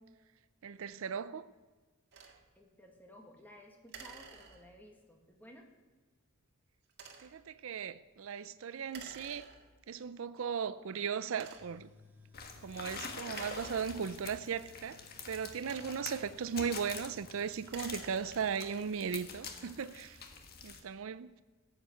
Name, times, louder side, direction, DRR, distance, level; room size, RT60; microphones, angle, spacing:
voice 1, 0.6-1.5 7.2-9.5 9.9-11.9 12.5-20.2 20.6-21.3, right 6 dB, 65° right, 0.4 m, -37 dB
sound 1, 2.1-2.4 3.9-4.9 6.9-7.4 8.9-9.9 10.6-10.7 11.3-11.9 13.3-14.4 15.4-16.3 17.5-18.6, right 5 dB, 50° right, 1.7 m, -52 dB
voice 2, 2.6-5.7, equal, 10° left, 1.8 m, -56 dB
Tools, 11.6-18.9, left 3 dB, 10° right, 1.7 m, -61 dB
sound 2, 12.3-20.8, left 5 dB, 45° left, 1.5 m, -46 dB
14.5 x 8.0 x 8.4 m
head